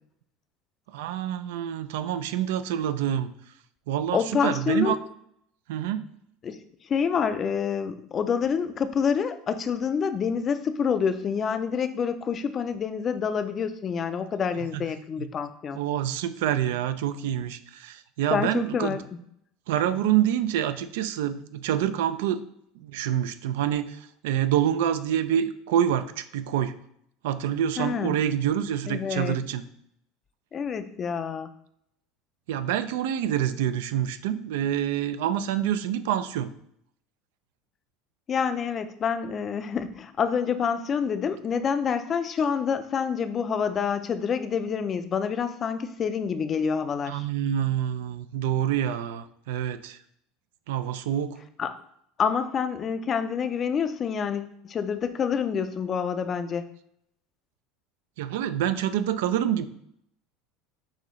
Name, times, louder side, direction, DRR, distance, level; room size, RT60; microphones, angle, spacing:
voice 1, 0.9-3.3 3.9-5.0 5.7-6.0 14.7-14.9 15.2-15.3 15.7-19.0 19.7-22.4 22.8-26.8 27.2-29.6 32.5-36.5 47.1-50.0 50.7-51.4 58.2-59.7, right 10 dB, 85° right, 12 dB, 0.3 m, -27 dB
voice 2, 4.1-5.0 6.4-6.6 6.9-15.8 18.3-19.0 27.8-28.2 28.9-29.4 30.5-31.5 38.3-47.2 51.6-51.7 52.2-56.6, left 6 dB, 30° left, 10 dB, 0.4 m, -27 dB
6.1 x 2.8 x 3.1 m, 0.70 s
supercardioid pair, 130°, 0 cm